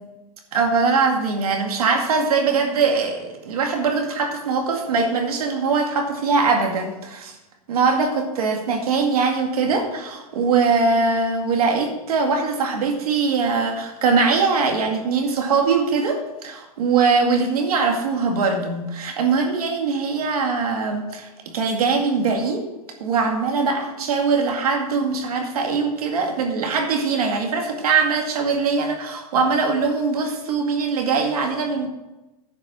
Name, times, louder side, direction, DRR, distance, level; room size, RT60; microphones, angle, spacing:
voice 1, 0.5-7.3 7.7-22.6 23.0-31.9, right 4 dB, 80° right, 3 dB, 2.1 m, -21 dB
11.0 x 4.8 x 7.7 m, 1.0 s
hypercardioid pair, 135°, 19 cm